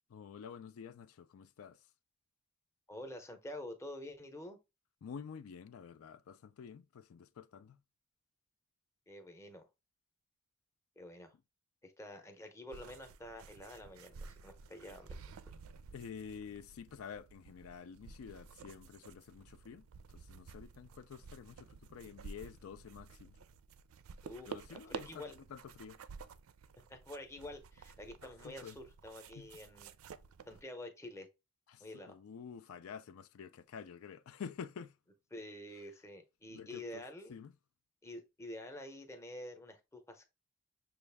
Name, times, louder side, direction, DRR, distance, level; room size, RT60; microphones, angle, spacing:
voice 1, 0.1-1.8 5.0-7.8 15.9-19.8 20.1-23.3 24.5-26.0 28.2-28.8 29.3-29.5 31.7-34.9 36.5-37.0 37.3-37.5, left 7 dB, 85° left, 0.4 m, -49 dB
voice 2, 2.9-4.6 9.1-9.7 11.0-11.3 11.8-15.1 24.2-25.3 26.9-29.9 30.5-31.3 31.8-32.2 35.3-37.4 38.0-40.2, left 1 dB, 15° left, 0.7 m, -48 dB
sound 1, 12.7-30.6, right 5 dB, 80° right, 0.4 m, -52 dB
6.1 x 2.4 x 3.3 m
head